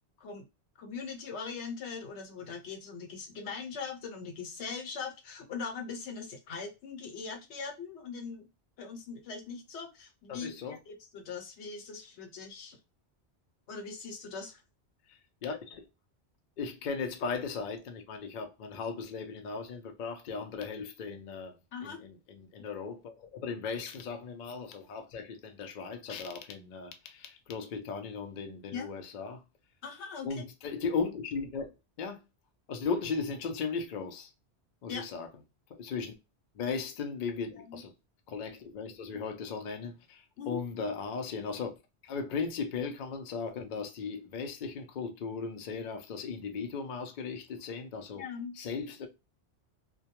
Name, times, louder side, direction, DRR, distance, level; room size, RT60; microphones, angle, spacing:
voice 1, 0.8-8.5 8.8-12.8 13.7-14.6 21.7-22.0 28.7-28.9 29.8-30.4 34.9-35.0 37.6-37.8 40.4-40.6 48.2-48.5, left 5 dB, 85° left, 1.0 m, -41 dB
voice 2, 10.3-10.8 15.1-15.8 16.6-29.4 30.2-31.7 32.0-32.2 32.7-34.3 34.8-35.3 35.7-36.1 36.6-37.9 38.3-41.7 42.0-48.2 48.6-49.1, left 5 dB, 60° left, 0.5 m, -37 dB
2.2 x 2.2 x 2.8 m
omnidirectional pair, 1.1 m